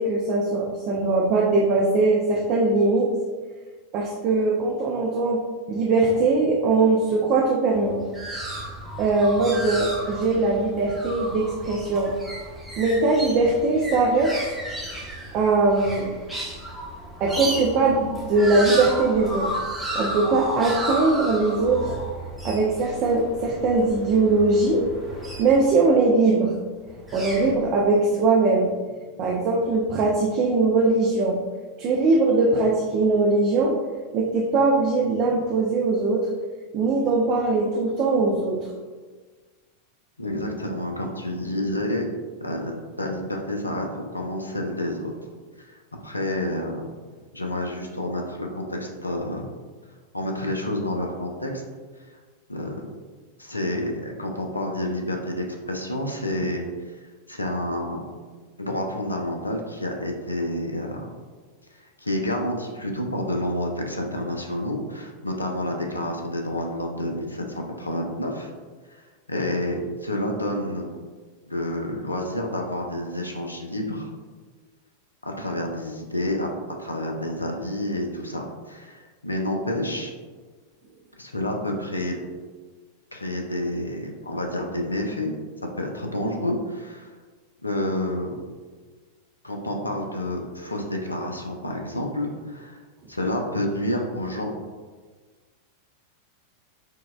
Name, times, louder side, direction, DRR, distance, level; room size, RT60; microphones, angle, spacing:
voice 1, 0.0-3.1 3.9-5.4 5.7-8.0 9.0-12.1 12.8-14.3 15.3-16.1 17.2-19.6 19.9-22.0 22.4-24.9 25.4-26.5 27.1-28.7 29.2-31.4 31.8-33.7 34.1-36.3 36.7-38.6, right 3 dB, 40° right, -1 dB, 0.4 m, -21 dB
sound 1, 7.7-25.9 26.8-27.5, right 1 dB, 5° right, 0.8 m, -33 dB
voice 2, 40.2-42.1 42.4-45.1 45.6-46.8 47.3-49.4 50.1-51.6 52.5-52.8 53.4-56.6 57.3-58.0 58.6-61.1 61.8-68.5 68.9-69.0 69.3-70.9 71.5-74.1 75.2-76.5 76.8-80.1 81.2-82.2 83.1-85.3 85.8-87.1 87.6-88.4 89.4-92.8 93.1-94.5, left 1 dB, 85° left, 2 dB, 0.4 m, -29 dB
4.5 x 2.1 x 2.2 m, 1.4 s
figure-of-eight pair, 90°, 0 cm